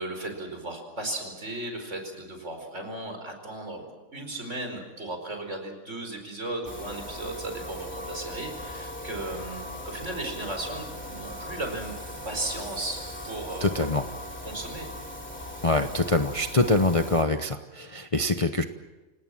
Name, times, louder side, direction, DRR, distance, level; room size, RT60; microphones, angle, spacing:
voice 1, 0.0-3.8 4.1-11.9 12.2-13.7 14.4-14.9, right 2 dB, 55° right, 5 dB, 5.0 m, -36 dB
sound 1, 6.6-17.2, left 1 dB, 10° left, 3.1 m, -39 dB
voice 2, 13.6-14.1 15.6-18.6, left 2 dB, 30° left, 7 dB, 0.8 m, -24 dB
28.0 x 18.5 x 7.6 m, 1.2 s
omnidirectional pair, 1.5 m